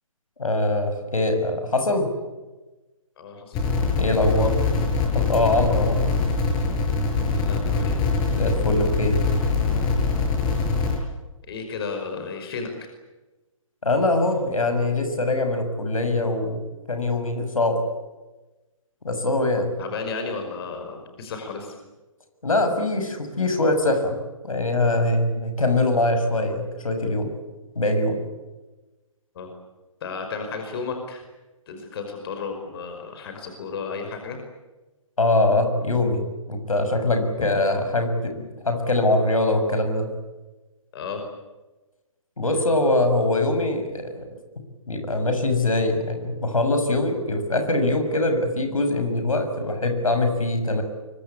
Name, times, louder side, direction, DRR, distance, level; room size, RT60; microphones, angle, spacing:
voice 1, 0.4-2.1 4.0-4.5 5.1-6.0 8.3-9.2 13.8-16.6 16.9-17.8 19.0-19.7 22.4-24.2 24.4-27.3 27.7-28.2 35.2-40.1 42.4-44.2 44.9-50.8, left 2 dB, 75° left, 6 dB, 6.7 m, -23 dB
voice 2, 3.2-3.6 4.4-4.5 7.2-8.0 11.5-12.9 19.8-21.8 29.4-29.5 30.0-31.2 31.7-34.4 40.9-41.2, left 4 dB, 45° left, 5 dB, 5.4 m, -33 dB
sound 1, 3.5-11.0, left 4 dB, 25° left, 6.2 m, -23 dB
25.0 x 24.0 x 8.8 m, 1.1 s
figure-of-eight pair, 135°, 18 cm